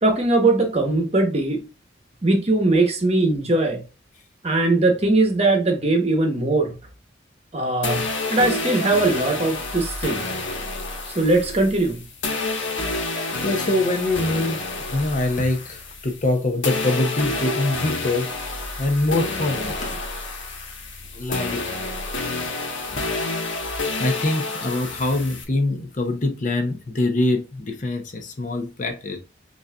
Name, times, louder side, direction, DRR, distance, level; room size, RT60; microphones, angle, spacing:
voice 1, 0.0-1.6 2.2-3.8 4.4-6.7 7.5-10.2 11.1-12.0 13.2-13.3, right 2 dB, 35° right, 0.9 m, -20 dB
sound 1, 7.8-16.3 16.6-25.4, left 3 dB, 85° left, 1.2 m, -29 dB
voice 2, 13.4-18.3 18.8-20.0 21.1-21.7 22.6-22.8 24.0-29.2, left 2 dB, 40° left, 0.7 m, -24 dB
6.1 x 2.7 x 2.2 m
head